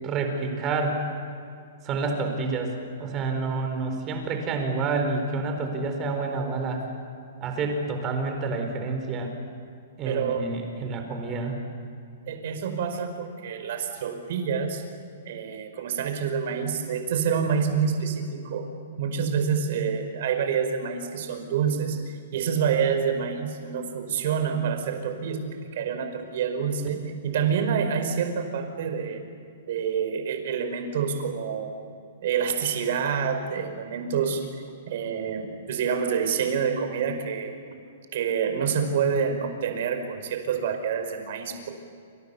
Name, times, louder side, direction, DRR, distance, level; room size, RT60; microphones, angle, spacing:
voice 1, 0.0-1.0 1.8-2.7 3.0-6.8 7.4-9.3 10.0-11.6, right 3 dB, 20° right, 4 dB, 4.4 m, -28 dB
voice 2, 10.0-10.4 12.3-14.8 15.2-18.7 19.0-25.4 25.7-29.2 29.7-31.7 32.2-34.5 34.9-37.5 38.1-41.7, right 7 dB, 55° right, 6 dB, 4.9 m, -27 dB
28.0 x 27.0 x 7.0 m, 2.4 s
hypercardioid pair, 165°, 0 cm